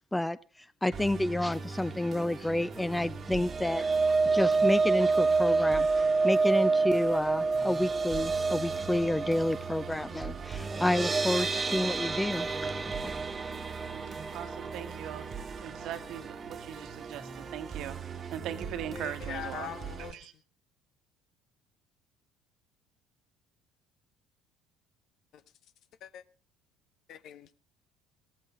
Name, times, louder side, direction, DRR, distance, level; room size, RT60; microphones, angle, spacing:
voice 1, 0.8-12.7 13.0-13.1, left 1 dB, 10° left, 0.7 m, -30 dB
Musical instrument, 0.9-20.1, right 6 dB, 40° right, 1.5 m, -42 dB
sound 1, 3.2-17.4 17.8-18.0 18.3-18.4, right 4 dB, 25° right, 1.4 m, -29 dB
voice 2, 14.3-18.0 18.3-19.7 20.1-20.3, right 10 dB, 55° right, 1.4 m, -40 dB
voice 3, 18.9-20.2 25.3-25.4 26.0-26.2 27.1-27.5, left 10 dB, 55° left, 0.9 m, -44 dB
17.0 x 14.0 x 3.7 m
figure-of-eight pair, 55°, 0 cm